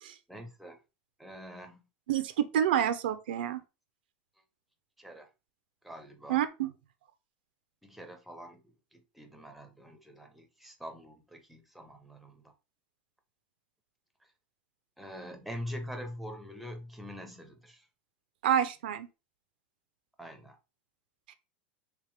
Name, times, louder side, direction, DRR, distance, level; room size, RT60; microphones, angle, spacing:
voice 1, 0.3-0.8 1.2-1.8 5.0-5.3 5.8-6.4 7.8-12.5 15.0-17.9 20.2-20.6, equal, ahead, 0.6 m, -44 dB
voice 2, 2.1-3.6 6.3-6.7 18.4-19.1 21.3-21.4, right 10 dB, 85° right, 0.6 m, -28 dB
3.4 x 3.0 x 3.3 m
supercardioid pair, 130°, 5 cm